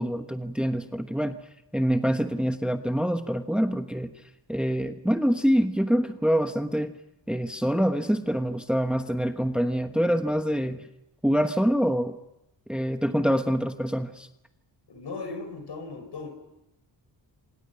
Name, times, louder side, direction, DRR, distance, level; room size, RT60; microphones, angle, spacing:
voice 1, 0.0-1.4 1.7-4.1 4.5-6.9 7.3-10.8 11.2-12.2 12.7-14.3, equal, ahead, 7 dB, 1.1 m, -25 dB
voice 2, 14.9-16.3, left 3 dB, 65° left, 5 dB, 5.6 m, -37 dB
27.5 x 26.5 x 5.8 m, 0.89 s
cardioid pair, 85°, 44 cm